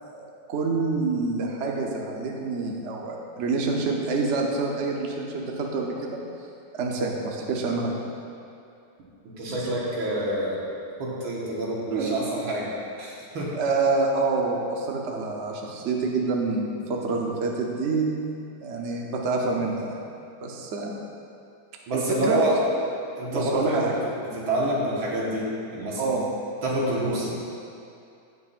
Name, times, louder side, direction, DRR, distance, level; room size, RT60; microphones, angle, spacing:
voice 1, 0.0-6.2 6.7-8.0 9.5-9.7 11.9-12.2 13.5-18.1 18.6-20.0 20.4-20.9 21.9-22.4 23.3-24.0 26.0-26.3, right 3 dB, 50° right, 0 dB, 0.9 m, -27 dB
voice 2, 9.2-10.6 11.0-12.7 13.0-13.5 21.9-22.6 23.2-23.9 24.2-26.2 26.6-27.3, right 1 dB, 90° right, -5 dB, 2.3 m, -27 dB
16.5 x 6.0 x 2.5 m, 2.6 s
omnidirectional pair, 2.1 m